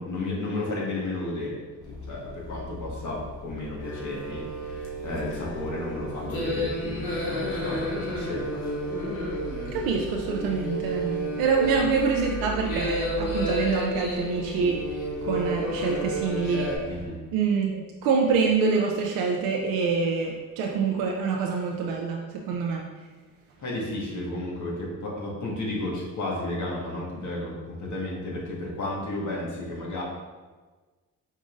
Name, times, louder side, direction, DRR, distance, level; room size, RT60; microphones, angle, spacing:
voice 1, 0.0-1.6 1.9-8.6 16.9-17.2 23.6-30.0, left 1 dB, 55° left, -4 dB, 1.5 m, -33 dB
sound 1, 1.8-17.1, right 1 dB, 10° left, 1.2 m, -41 dB
sound 2, 3.8-16.8, equal, 80° left, 1.2 m, -31 dB
voice 2, 9.7-14.8 15.2-16.7 17.3-22.2 22.5-22.9, right 5 dB, 85° right, 0 dB, 0.5 m, -26 dB
5.2 x 3.6 x 2.5 m, 1.3 s
supercardioid pair, 70°, 35 cm